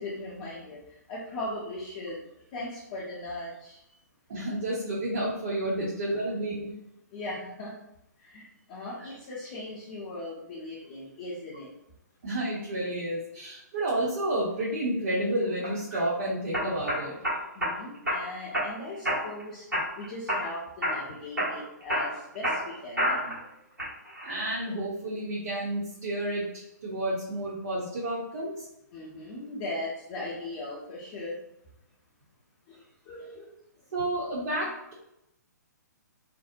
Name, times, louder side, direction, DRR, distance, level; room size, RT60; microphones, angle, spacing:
voice 1, 0.0-2.2 2.5-3.8 5.8-5.9 7.1-7.7 8.2-11.7 17.5-19.7 20.0-23.4 28.9-31.4 32.7-33.5, left 2 dB, 30° left, -6 dB, 0.5 m, -39 dB
voice 2, 4.3-6.7 9.0-9.1 12.2-17.2 24.2-28.7 33.9-34.9, right 1 dB, 50° right, -5 dB, 0.7 m, -30 dB
sound 1, 15.6-16.0 16.5-17.7 18.1-18.7 19.0-19.4 19.7-20.5 20.8-21.1 21.4-23.4 23.8-24.3, equal, 90° right, 1.1 m, -29 dB
2.5 x 2.0 x 2.5 m, 0.81 s
figure-of-eight pair, 125°, 10 cm